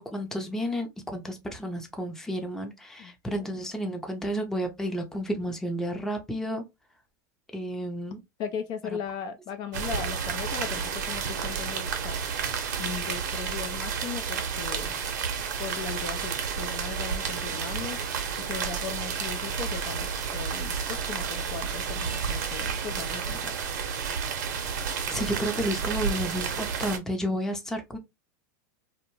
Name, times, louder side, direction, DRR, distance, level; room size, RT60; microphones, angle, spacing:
voice 1, 0.1-6.6 7.5-8.2 8.9-9.0 25.1-28.0, equal, 5° left, 0.6 m, -31 dB
voice 2, 3.0-3.5 8.4-12.2 12.8-14.9 15.6-18.0 18.4-23.6, left 7 dB, 45° left, 0.5 m, -38 dB
sound 1, 9.7-27.0, right 6 dB, 70° right, 0.7 m, -31 dB
2.4 x 2.2 x 3.0 m
hypercardioid pair, 110°, 10 cm